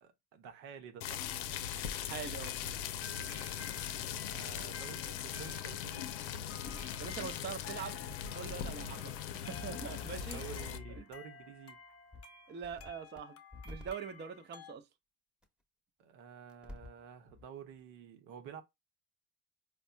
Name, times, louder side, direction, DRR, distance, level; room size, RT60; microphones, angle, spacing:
voice 1, 0.0-1.5 4.3-6.1 10.3-11.8 16.0-18.6, right 8 dB, 75° right, 0.9 m, -50 dB
sound 1, 1.0-10.8, left 9 dB, 85° left, 0.6 m, -40 dB
voice 2, 2.0-2.5 7.0-8.0 8.3-10.4 11.0-11.1 12.5-13.4 13.6-14.8, right 7 dB, 25° right, 0.5 m, -43 dB
sound 2, 2.4-14.7, left 4 dB, 30° left, 0.7 m, -53 dB
sound 3, 6.7-7.3 8.0-8.1 8.5-8.6 9.5-11.2 12.1-12.2 12.6-13.2 13.5-13.9 15.4-15.5 16.5-17.0 17.3-17.4, left 4 dB, ahead, 0.9 m, -48 dB
4.2 x 2.3 x 2.3 m
hypercardioid pair, 75°, 50 cm